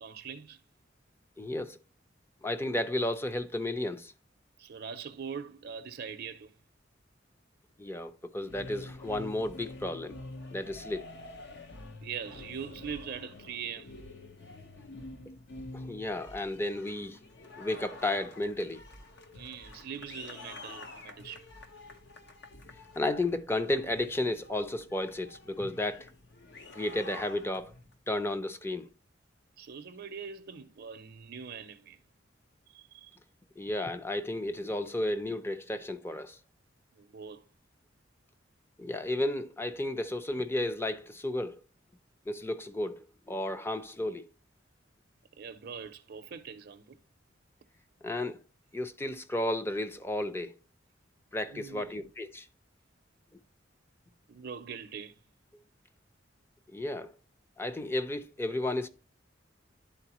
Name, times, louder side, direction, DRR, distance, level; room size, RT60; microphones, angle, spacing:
voice 1, 0.0-0.6 4.6-6.5 12.0-14.0 19.3-21.4 29.6-32.0 32.7-33.1 36.9-37.4 45.4-47.0 51.5-52.1 54.3-55.2, right 7 dB, 60° right, 0.5 m, -42 dB
voice 2, 1.4-1.8 2.4-4.1 7.8-10.1 10.5-11.0 15.7-17.2 17.6-18.8 23.0-26.1 26.7-27.7 28.1-28.9 33.6-36.4 38.8-41.6 42.3-44.3 48.0-48.4 48.7-50.5 51.3-52.5 56.7-57.1 57.6-58.9, left 1 dB, 15° left, 0.5 m, -33 dB
sound 1, 8.4-27.9, left 2 dB, 65° left, 0.9 m, -48 dB
11.0 x 4.2 x 2.9 m
head